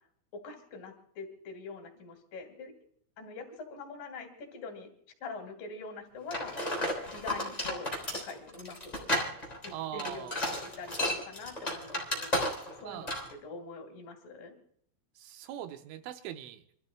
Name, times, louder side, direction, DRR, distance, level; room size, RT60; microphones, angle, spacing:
voice 1, 0.3-2.7 3.2-4.9 5.2-6.6 7.1-9.1 9.6-12.3 12.8-14.6, left 3 dB, 50° left, 4 dB, 3.7 m, -44 dB
sound 1, 6.3-12.8 13.1-13.3, left 1 dB, 10° left, 2.1 m, -33 dB
voice 2, 9.7-10.3 12.8-13.1 15.2-16.6, right 12 dB, 80° right, 7 dB, 3.3 m, -41 dB
29.5 x 13.0 x 2.2 m, 0.65 s
omnidirectional pair, 5.8 m